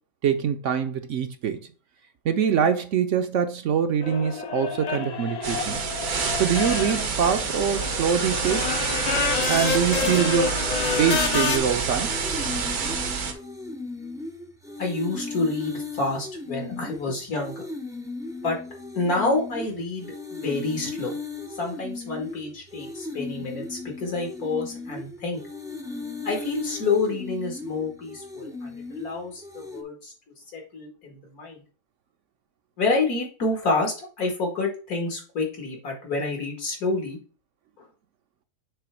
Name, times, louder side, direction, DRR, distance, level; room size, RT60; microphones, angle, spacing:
voice 1, 0.2-1.6 2.2-5.8 6.4-8.7 9.5-10.6 11.0-12.1, right 8 dB, 65° right, 0.9 m, -24 dB
sound 1, 4.0-11.6, left 6 dB, 50° left, 0.4 m, -29 dB
sound 2, 5.4-13.3, right 5 dB, 80° right, 1.6 m, -28 dB
sound 3, 10.0-29.8, left 3 dB, 5° right, 0.4 m, -37 dB
voice 2, 14.8-17.6 18.4-18.6 18.9-21.2 21.5-25.4 26.2-30.1 30.5-31.6 32.8-37.2 37.8-37.9, left 3 dB, 80° left, 2.6 m, -28 dB
6.9 x 3.4 x 4.6 m
omnidirectional pair, 1.6 m